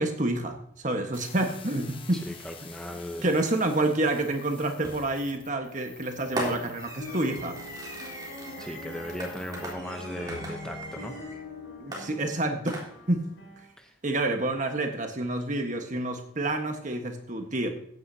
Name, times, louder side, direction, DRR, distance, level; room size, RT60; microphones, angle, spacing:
voice 1, 0.0-2.2 3.2-7.6 11.8-12.8 13.1-13.3 14.0-17.7, right 2 dB, 40° right, 5 dB, 1.4 m, -28 dB
sound 1, 1.1-9.7, left 6 dB, 25° left, 1.0 m, -48 dB
voice 2, 2.1-3.3 8.6-11.1 13.8-13.9, equal, 5° left, 4 dB, 0.7 m, -37 dB
Fireworks, 4.8-5.2 6.4-11.4 11.9-13.3, equal, 20° right, 3.3 m, -39 dB
sound 2, 7.0-13.7, left 1 dB, 70° left, 5.0 m, -43 dB
15.5 x 9.6 x 2.8 m, 0.68 s
head